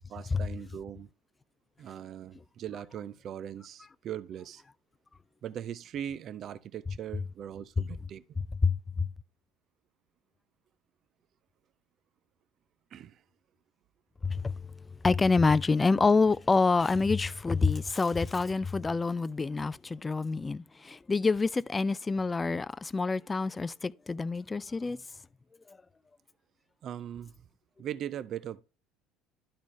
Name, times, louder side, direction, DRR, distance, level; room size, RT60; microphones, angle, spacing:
voice 1, 0.1-1.1 1.8-4.6 5.4-8.4 12.9-13.2 26.8-27.3 27.8-28.6, right 10 dB, 45° right, 0.5 m, -40 dB
voice 2, 8.6-9.1 14.2-25.0 25.7-25.8, left 4 dB, 20° left, 0.4 m, -27 dB
12.0 x 4.1 x 3.1 m
figure-of-eight pair, 60°, 0 cm